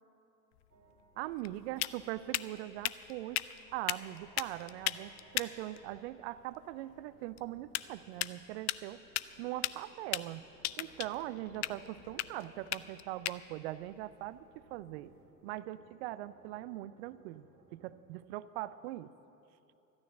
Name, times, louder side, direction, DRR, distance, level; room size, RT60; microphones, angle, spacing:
sound 1, 0.5-15.2, left 16 dB, 45° left, 0.4 m, -40 dB
sound 2, 0.7-1.6 3.4-6.0 6.9-8.3 8.9-13.0 14.4-18.0, right 3 dB, 75° right, 1.9 m, -62 dB
voice 1, 1.2-3.5 3.7-9.0 9.4-10.4 10.8-15.1 15.4-17.5 17.7-19.1, right 15 dB, 45° right, 17 dB, 0.5 m, -41 dB
13.5 x 9.7 x 7.3 m, 2.8 s
figure-of-eight pair, 75°, 49 cm